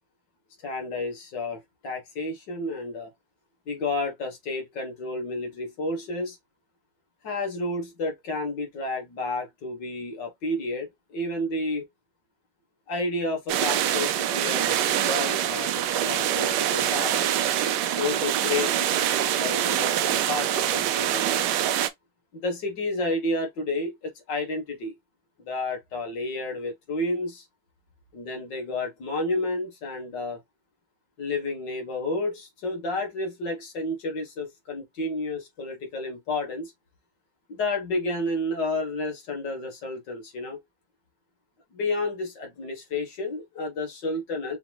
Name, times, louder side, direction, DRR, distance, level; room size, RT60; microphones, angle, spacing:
voice 1, 0.6-3.1 3.7-6.4 7.2-11.9 12.9-17.2 18.0-21.5 22.3-25.0 25.5-27.5 28.1-30.4 31.2-36.7 37.5-40.6 41.7-44.6, left 2 dB, 55° left, 2.1 m, -31 dB
sound 1, 13.5-21.9, right 11 dB, 75° right, 1.0 m, -25 dB
5.7 x 3.0 x 2.4 m
omnidirectional pair, 2.4 m